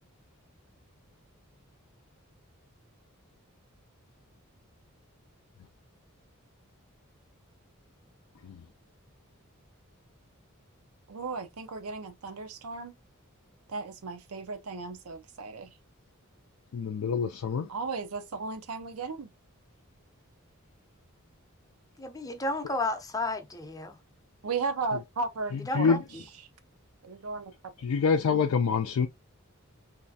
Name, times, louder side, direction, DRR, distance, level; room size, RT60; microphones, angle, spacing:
voice 1, 11.1-12.9 13.7-15.7 17.7-19.3 24.4-25.9 27.0-27.7, right 4 dB, 85° right, 0.6 m, -35 dB
voice 2, 16.7-17.7 25.7-26.0 27.8-29.1, left 5 dB, 85° left, 0.4 m, -26 dB
voice 3, 22.0-24.0 25.6-26.2, left 2 dB, 15° left, 0.5 m, -33 dB
3.2 x 2.7 x 2.6 m
head